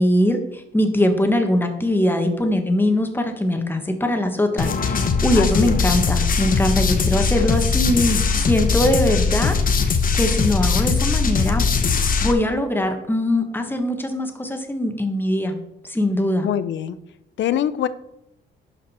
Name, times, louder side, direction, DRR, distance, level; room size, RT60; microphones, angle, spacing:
voice 1, 0.0-11.6 12.2-15.6 15.8-16.5, left 1 dB, 10° left, 5 dB, 1.5 m, -21 dB
sound 1, 4.6-12.3, left 5 dB, 45° left, 1.1 m, -20 dB
voice 2, 5.3-5.8 16.4-17.0 17.4-17.9, left 10 dB, 70° left, 15 dB, 0.6 m, -24 dB
11.5 x 5.1 x 4.4 m, 0.84 s
cardioid pair, 90°, 20 cm